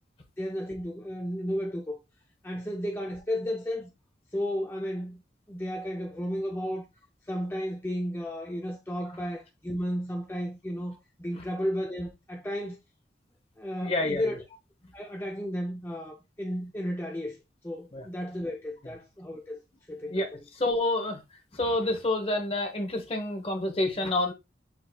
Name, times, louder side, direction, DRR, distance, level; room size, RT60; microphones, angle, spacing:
voice 1, 0.4-2.0 2.4-3.9 4.3-5.2 5.5-6.8 7.2-12.8 13.6-14.4 14.9-17.4 17.6-19.6 19.9-20.2, equal, 10° left, 0.4 m, -33 dB
voice 2, 13.8-14.4 17.9-18.0 20.1-20.3 20.6-21.2 21.5-24.3, left 2 dB, 30° left, 0.9 m, -28 dB
5.9 x 3.6 x 2.2 m
head